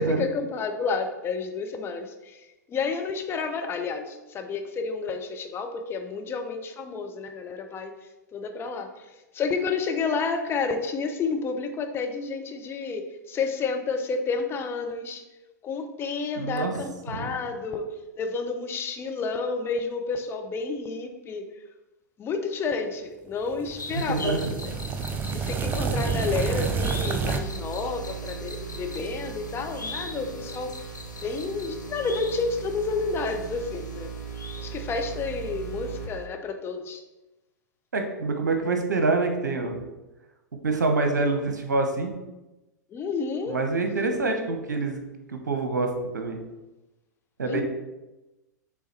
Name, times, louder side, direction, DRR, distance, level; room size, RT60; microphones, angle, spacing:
voice 1, 0.0-2.4 2.7-7.9 8.3-8.9 9.3-15.2 15.6-17.8 18.2-21.5 22.2-24.4 25.3-30.8 31.2-34.1 34.6-37.0 42.9-43.6 47.5-47.6, left 4 dB, 25° left, 5 dB, 0.7 m, -30 dB
voice 2, 16.4-16.8 17.1-17.3 23.9-24.5 37.9-39.8 40.6-42.1 43.5-45.0 45.3-46.4 47.4-47.6, right 3 dB, 75° right, 5 dB, 0.9 m, -26 dB
sound 1, 23.5-27.4, right 5 dB, 20° right, 0.5 m, -29 dB
sound 2, 23.8-35.5 35.7-35.8, left 3 dB, 85° left, 0.7 m, -42 dB
sound 3, 26.1-36.0, right 7 dB, 50° left, 2.3 m, -38 dB
7.3 x 3.6 x 4.3 m, 1.0 s
figure-of-eight pair, 95°, 10 cm